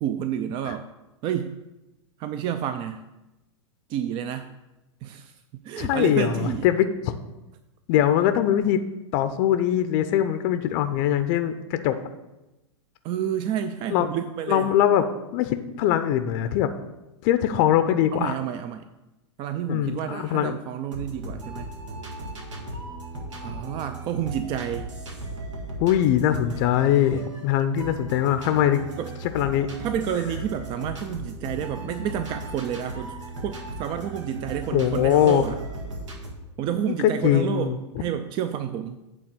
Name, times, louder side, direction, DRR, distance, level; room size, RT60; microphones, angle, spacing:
voice 1, 0.0-0.9 1.2-1.5 2.2-3.1 3.9-4.5 5.0-5.3 5.6-6.7 13.0-14.7 18.1-18.9 19.4-21.7 23.4-24.9 29.0-29.1 29.8-33.1 33.4-35.6 36.6-39.0, right 9 dB, 30° right, 9 dB, 0.4 m, -29 dB
voice 2, 5.8-7.2 7.9-8.8 9.1-11.9 13.9-14.1 14.5-15.0 15.3-16.7 17.2-18.3 19.7-20.5 25.8-28.9 29.3-29.7 34.7-35.5 36.9-37.8, left 11 dB, 45° left, 9 dB, 0.5 m, -22 dB
sound 1, 20.9-36.3, right 1 dB, 90° right, 1.7 m, -37 dB
8.6 x 3.5 x 6.6 m, 1.0 s
hypercardioid pair, 130°, 15 cm